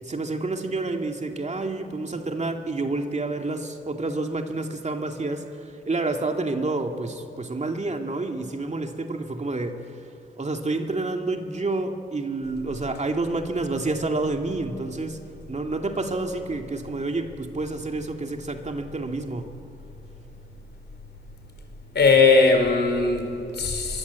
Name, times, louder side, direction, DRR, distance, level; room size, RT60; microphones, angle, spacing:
voice 1, 0.0-10.1 10.4-15.2 15.5-19.5, right 2 dB, 40° right, 4 dB, 2.4 m, -29 dB
voice 2, 21.9-24.0, left 4 dB, 70° left, 5 dB, 4.6 m, -19 dB
24.5 x 23.0 x 8.3 m, 2.6 s
cardioid pair, 65°, 18 cm